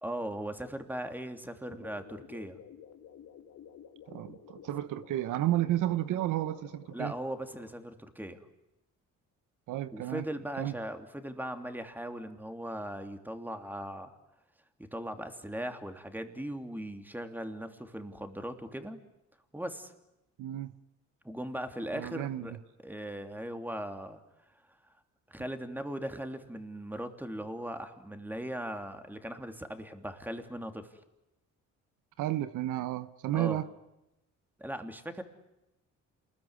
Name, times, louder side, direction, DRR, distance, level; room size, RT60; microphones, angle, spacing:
voice 1, 0.0-2.6 6.9-8.4 9.9-14.2 14.8-19.0 19.5-19.9 21.2-22.6 22.8-24.2 25.3-30.9 33.3-33.6 34.6-35.2, right 1 dB, 5° right, 3.0 m, -39 dB
sound 1, 1.6-7.8, left 8 dB, 75° left, 2.6 m, -52 dB
voice 2, 4.1-7.1 9.7-10.3 10.6-10.7 20.4-20.7 21.9-22.6 32.2-33.7, right 14 dB, 85° right, 1.0 m, -32 dB
28.5 x 21.0 x 9.7 m
cardioid pair, 90°, 30 cm